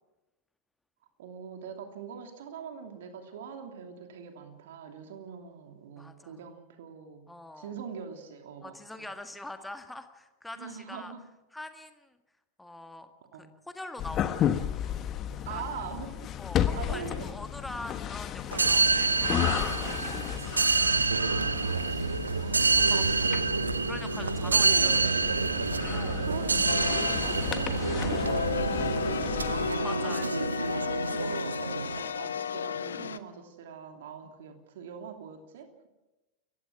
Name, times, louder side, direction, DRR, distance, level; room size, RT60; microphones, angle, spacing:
voice 1, 1.2-7.3 7.5-9.1 10.6-11.2 13.3-13.5 15.5-16.1 16.7-17.3 21.9-23.9 24.4-25.5 26.2-28.1 28.5-30.5 30.8-35.9, right 7 dB, 55° right, 5 dB, 2.9 m, -43 dB
voice 2, 6.0-6.4 7.3-7.7 8.6-11.1 11.5-12.2 12.6-13.1 13.4-14.5 15.5-15.6 16.4-20.8 22.8-23.1 23.9-25.0 25.9-26.3 29.8-30.3, left 2 dB, 5° left, 7 dB, 1.8 m, -43 dB
sound 1, 14.0-29.7, left 10 dB, 30° left, 1.3 m, -34 dB
sound 2, 18.5-32.0, right 4 dB, 75° right, 0.6 m, -27 dB
sound 3, 26.7-33.2, left 7 dB, 70° left, 0.9 m, -34 dB
29.5 x 15.5 x 6.0 m, 1.0 s
figure-of-eight pair, 90°, 0 cm